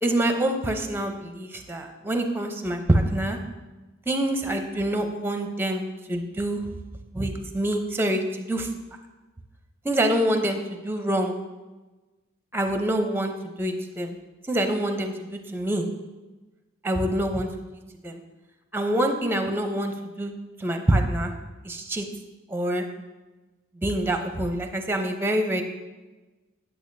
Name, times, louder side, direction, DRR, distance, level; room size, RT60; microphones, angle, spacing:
voice 1, 0.0-3.4 4.1-6.7 7.1-8.7 9.8-11.4 12.5-14.1 14.5-15.9 16.8-17.5 18.0-18.2 18.7-20.3 20.6-21.3 21.6-22.1 22.5-22.9 23.8-25.6, right 1 dB, 10° right, 5 dB, 0.6 m, -26 dB
8.7 x 8.4 x 2.6 m, 1.2 s
head